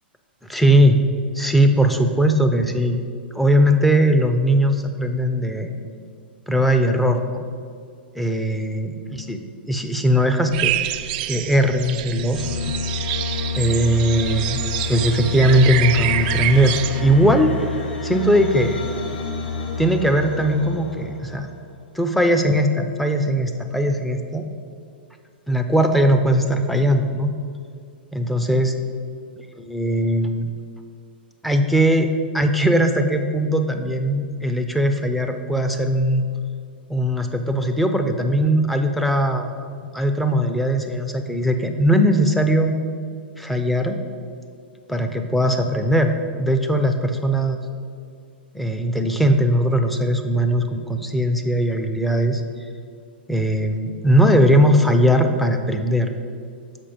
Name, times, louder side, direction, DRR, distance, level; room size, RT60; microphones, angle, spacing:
voice 1, 0.5-1.0 1.4-3.0 3.4-5.7 6.5-7.4 8.2-8.9 9.3-9.4 9.7-10.8 11.3-12.8 13.6-14.6 14.9-17.5 18.0-18.8 19.8-21.5 22.0-24.4 25.5-27.3 28.1-28.7 29.7-30.5 31.4-32.1 32.3-36.2 36.9-39.5 39.9-42.8 43.4-44.0 44.9-46.1 46.4-47.6 48.5-52.4 53.3-56.1, equal, ahead, 5 dB, 0.5 m, -19 dB
sound 1, 10.5-17.0, right 13 dB, 50° right, 0.4 m, -27 dB
sound 2, 12.3-21.8, left 5 dB, 70° left, 1.5 m, -29 dB
6.7 x 5.5 x 5.1 m, 2.2 s
hypercardioid pair, 110°, 6 cm